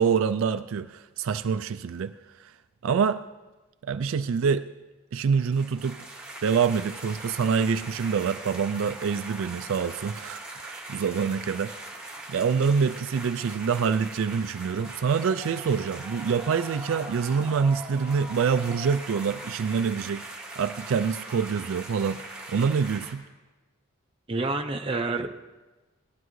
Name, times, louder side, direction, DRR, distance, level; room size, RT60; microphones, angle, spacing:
voice 1, 0.0-2.5 2.8-3.2 3.8-4.6 5.1-6.0 6.4-11.7 12.3-20.3 20.6-23.2, right 6 dB, 65° right, 11 dB, 0.3 m, -26 dB
sound 1, 5.2-23.1, right 2 dB, 5° right, 2.0 m, -41 dB
voice 2, 24.3-25.3, right 3 dB, 25° right, 4 dB, 0.6 m, -28 dB
18.0 x 12.5 x 3.1 m, 1.2 s
head